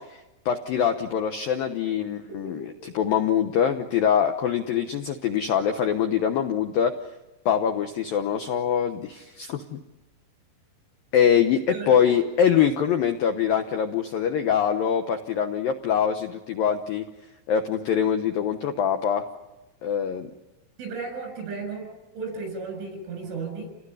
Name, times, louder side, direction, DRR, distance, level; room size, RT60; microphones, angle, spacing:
voice 1, 0.0-6.9 7.5-9.8 11.1-17.0 17.5-19.3 19.8-20.3, left 8 dB, 75° left, 6 dB, 2.1 m, -24 dB
voice 2, 20.8-21.9 22.1-23.7, right 4 dB, 70° right, 6 dB, 9.4 m, -34 dB
29.0 x 19.0 x 9.9 m, 1.0 s
omnidirectional pair, 5.6 m